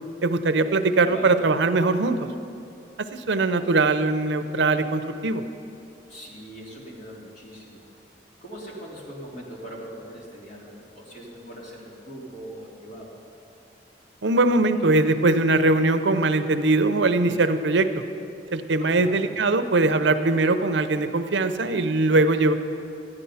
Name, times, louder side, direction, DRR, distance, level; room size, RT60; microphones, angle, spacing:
voice 1, 0.2-2.2 3.1-5.4 14.2-17.9 18.5-22.5, right 2 dB, 80° right, 9 dB, 0.7 m, -21 dB
voice 2, 1.0-1.4 6.1-7.9 8.4-13.1 18.8-19.3, equal, 45° left, -4 dB, 2.8 m, -41 dB
13.5 x 11.0 x 5.7 m, 2.7 s
head